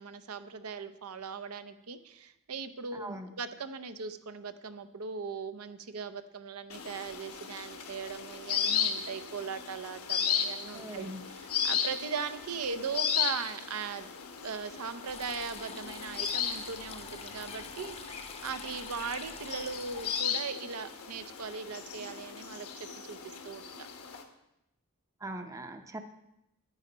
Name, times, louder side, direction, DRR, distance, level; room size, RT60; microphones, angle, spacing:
voice 1, 0.0-14.1 14.4-23.9, right 5 dB, 80° right, 10 dB, 0.7 m, -39 dB
voice 2, 2.9-3.3 10.7-11.2 25.2-26.0, right 1 dB, 15° right, 6 dB, 0.6 m, -41 dB
sound 1, 6.7-24.2, left 7 dB, 75° left, 1.1 m, -36 dB
sound 2, 15.1-20.2, left 5 dB, 30° left, 0.7 m, -46 dB
10.5 x 9.8 x 4.0 m, 0.86 s
head